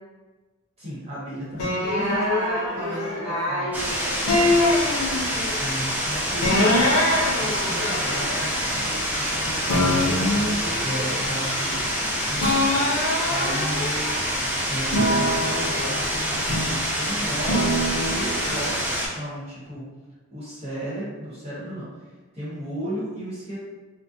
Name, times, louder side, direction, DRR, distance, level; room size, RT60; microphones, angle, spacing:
voice 1, 0.8-2.4 2.7-3.8 5.4-10.2 10.8-11.9 12.3-12.6 13.0-14.0 14.7-19.9 20.3-23.6, equal, 30° right, -10 dB, 0.9 m, -34 dB
sound 1, 1.6-3.7 4.3-5.6 6.4-9.4 9.7-12.1 12.4-14.4 14.9-16.9 17.4-18.6, left 1 dB, 85° left, 0.6 m, -25 dB
voice 2, 1.8-4.7, equal, 90° right, -7 dB, 1.0 m, -30 dB
sound 2, 3.7-19.1, equal, 5° right, 0.4 m, -27 dB
2.5 x 2.0 x 2.5 m, 1.2 s
head